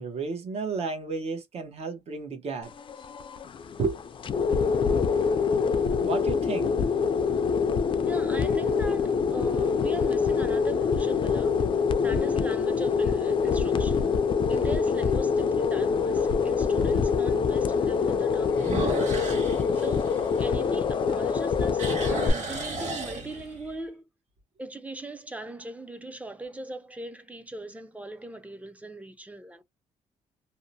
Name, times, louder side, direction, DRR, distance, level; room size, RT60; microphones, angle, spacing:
voice 1, 0.0-2.7 3.8-4.0 6.0-6.7 7.7-7.9, right 4 dB, 55° right, 0.9 m, -32 dB
sound 1, 2.6-22.3, left 5 dB, 45° left, 0.4 m, -25 dB
sound 2, 4.9-5.5 6.2-6.3 11.5-12.0 12.5-12.6 13.1-13.2 13.5-13.6 15.1-15.2 18.5-21.0 21.4-23.7, right 2 dB, 80° right, 1.3 m, -34 dB
voice 2, 8.1-11.7 12.0-14.2 14.5-19.4 19.7-24.0 24.6-29.6, right 2 dB, 10° right, 0.5 m, -39 dB
2.7 x 2.1 x 2.6 m
cardioid pair, 110°, 12 cm